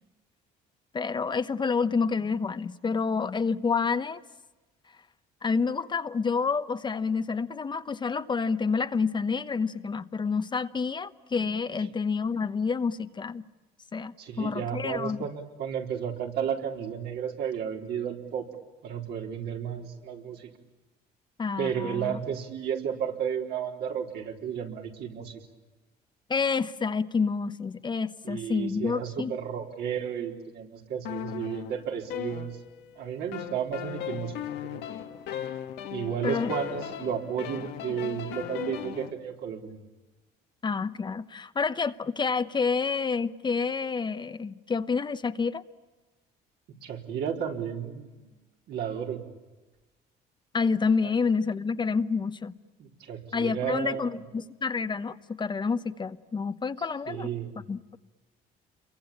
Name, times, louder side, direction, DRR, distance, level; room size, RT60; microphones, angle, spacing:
voice 1, 0.9-4.2 5.4-13.4 13.9-15.2 21.4-22.2 26.3-29.4 36.2-36.5 40.6-45.6 50.5-52.5 53.3-57.3 57.7-58.0, left 5 dB, 25° left, 0.9 m, -28 dB
voice 2, 14.2-18.5 18.8-20.5 21.6-25.4 28.2-32.6 33.0-34.3 34.7-34.8 35.9-39.7 46.8-48.3 48.7-49.2 51.0-51.1 52.8-54.2 57.1-57.5, right 8 dB, 75° right, 4.2 m, -33 dB
sound 1, 31.0-32.9 33.3-39.1, left 10 dB, 85° left, 1.9 m, -37 dB
28.0 x 23.5 x 8.7 m
cardioid pair, 110°, 17 cm